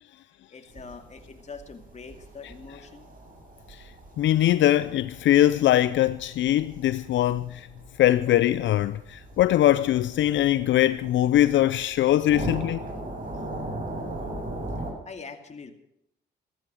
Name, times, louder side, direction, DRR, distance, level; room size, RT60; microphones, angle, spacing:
voice 1, 0.5-3.1 14.7-15.7, left 5 dB, 35° left, 2.4 m, -43 dB
sound 1, 0.7-14.9, right 1 dB, 45° right, 7.9 m, -39 dB
voice 2, 3.7-7.7 8.0-12.9, left 13 dB, 70° left, 0.5 m, -22 dB
15.0 x 14.0 x 6.2 m
cardioid pair, 90°, 20 cm